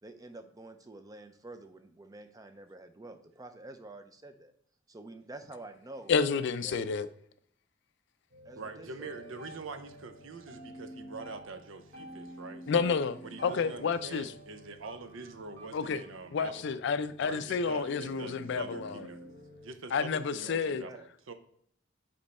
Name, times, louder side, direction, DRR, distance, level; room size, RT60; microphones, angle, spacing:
voice 1, 0.0-4.5 4.9-6.1 6.6-6.8 8.4-9.3 20.4-21.1, right 2 dB, 20° right, 0.5 m, -48 dB
voice 2, 6.1-7.1 12.7-13.2 13.4-14.3 15.7-16.0 16.3-19.0 19.9-20.9, left 5 dB, 60° left, 0.4 m, -30 dB
sound 1, 8.3-19.7, equal, 50° right, 1.5 m, -49 dB
voice 3, 8.6-12.9 13.2-16.8 17.2-19.2 19.6-21.3, right 3 dB, 75° right, 0.6 m, -45 dB
5.2 x 4.4 x 4.1 m
head